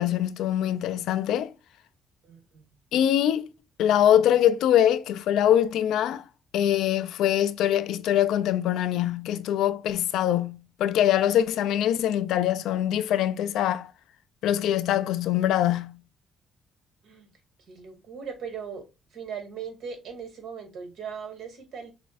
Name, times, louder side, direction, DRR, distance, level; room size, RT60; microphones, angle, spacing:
voice 1, 0.0-1.5 2.9-3.5 3.8-6.2 6.5-13.9 14.4-16.0, left 11 dB, 85° left, 0.3 m, -23 dB
voice 2, 2.2-2.7 17.0-17.3 17.6-21.9, right 6 dB, 75° right, 1.9 m, -39 dB
6.1 x 2.5 x 2.4 m
cardioid pair, 90°, 0 cm